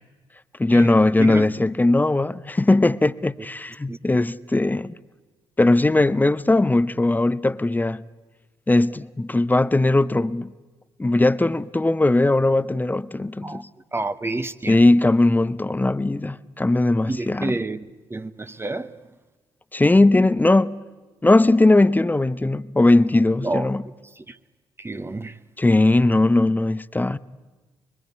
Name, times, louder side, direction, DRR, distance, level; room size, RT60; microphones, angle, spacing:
voice 1, 0.6-5.0 5.6-8.0 8.7-10.5 11.0-13.7 14.7-17.6 19.7-20.8 21.2-23.8 25.6-27.2, left 2 dB, 15° left, 0.9 m, -19 dB
voice 2, 13.9-14.8 17.1-18.9 23.4-23.7 24.2-24.4 24.8-25.4, right 2 dB, 20° right, 1.1 m, -29 dB
25.0 x 23.0 x 9.6 m
figure-of-eight pair, 40°, 12 cm